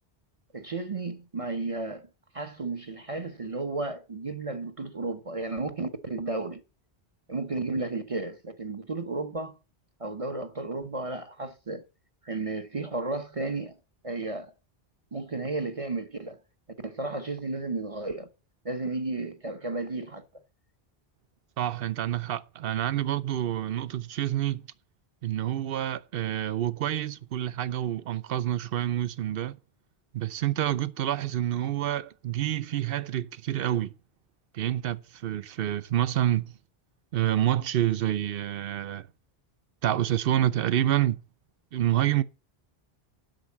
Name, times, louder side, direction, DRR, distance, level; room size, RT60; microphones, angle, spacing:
voice 1, 0.5-2.1 2.3-6.6 7.3-9.5 10.0-11.9 12.2-13.8 14.0-14.5 15.1-16.4 16.8-18.3 18.6-20.2, right 3 dB, 35° right, 1.0 m, -33 dB
voice 2, 21.6-24.7 25.2-29.6 30.1-33.9 34.5-36.5 37.1-39.1 39.8-41.2 41.7-42.2, right 12 dB, 65° right, 0.8 m, -28 dB
7.9 x 6.5 x 7.1 m
omnidirectional pair, 1.0 m